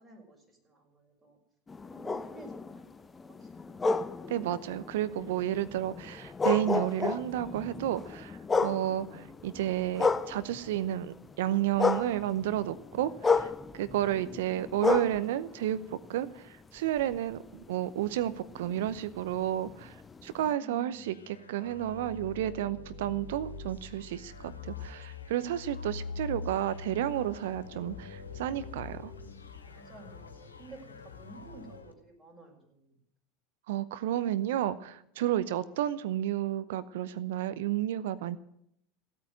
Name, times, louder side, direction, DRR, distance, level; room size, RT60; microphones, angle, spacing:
voice 1, 0.0-1.4 1.9-2.8 3.2-3.9 20.3-21.1 25.7-26.4 27.7-28.0 29.6-33.0 35.6-35.8, right 3 dB, 20° right, 0 dB, 6.3 m, -53 dB
sound 1, 1.7-10.9 11.2-16.5 17.0-20.5, left 4 dB, 20° left, 0.7 m, -33 dB
voice 2, 4.3-20.0 20.2-29.1 33.7-38.4, right 12 dB, 65° right, 15 dB, 0.7 m, -31 dB
sound 2, 20.9-31.9, left 4 dB, 85° left, 2.1 m, -44 dB
16.0 x 8.7 x 9.2 m, 0.73 s
figure-of-eight pair, 80°, 0 cm